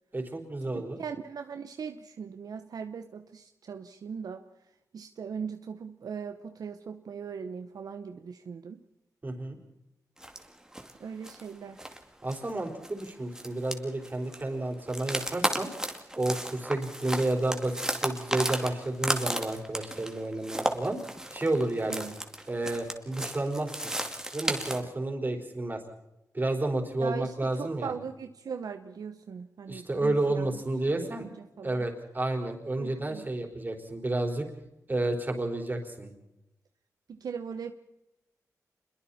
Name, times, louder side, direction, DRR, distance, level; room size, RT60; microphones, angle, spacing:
voice 1, 0.1-1.0 9.2-9.6 12.2-15.7 16.1-21.0 21.3-22.1 22.5-23.9 24.3-25.8 26.3-27.9 29.7-31.3 31.6-34.5 34.9-36.1, right 2 dB, 30° right, 3 dB, 4.5 m, -31 dB
voice 2, 0.7-4.4 4.9-8.8 11.0-11.9 21.9-22.2 27.0-30.6 30.9-31.8 32.8-33.3 37.1-37.7, right 6 dB, 75° right, 7 dB, 1.0 m, -39 dB
sound 1, 10.2-10.5 10.7-10.9 11.2-11.5 11.8-12.0 12.3-14.4 14.9-24.8, right 1 dB, 10° right, 2.3 m, -34 dB
27.0 x 22.0 x 4.3 m, 0.90 s
cardioid pair, 75°, 7 cm